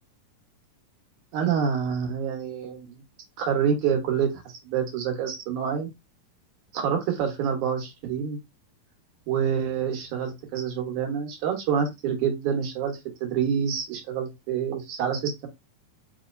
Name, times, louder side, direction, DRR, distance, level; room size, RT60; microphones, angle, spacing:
voice 1, 1.3-3.0 3.4-4.3 4.6-5.9 6.7-8.4 9.3-15.5, right 7 dB, 65° right, 3 dB, 2.3 m, -27 dB
5.4 x 2.8 x 2.5 m, 0.21 s
omnidirectional pair, 4.1 m